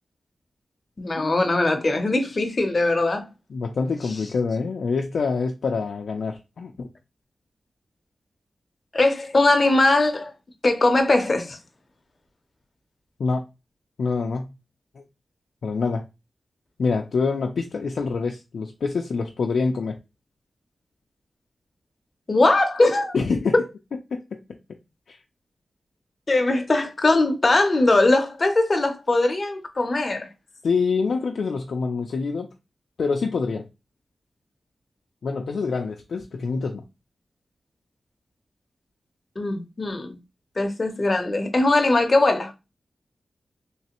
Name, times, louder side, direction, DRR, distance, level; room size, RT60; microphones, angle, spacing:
voice 1, 1.0-3.3 8.9-10.3 10.6-11.6 22.3-23.1 23.5-23.6 26.3-30.3 39.4-40.2 40.6-42.5, left 2 dB, 30° left, 0.6 m, -20 dB
voice 2, 3.5-6.9 13.2-13.4 14.0-14.5 15.0-15.1 15.6-16.0 16.8-20.0 23.1-23.6 24.1-24.2 25.1-25.2 30.6-32.5 33.0-33.7 35.2-36.8, left 4 dB, 75° left, 0.4 m, -26 dB
3.2 x 3.1 x 2.9 m
wide cardioid pair, 175°, 0 cm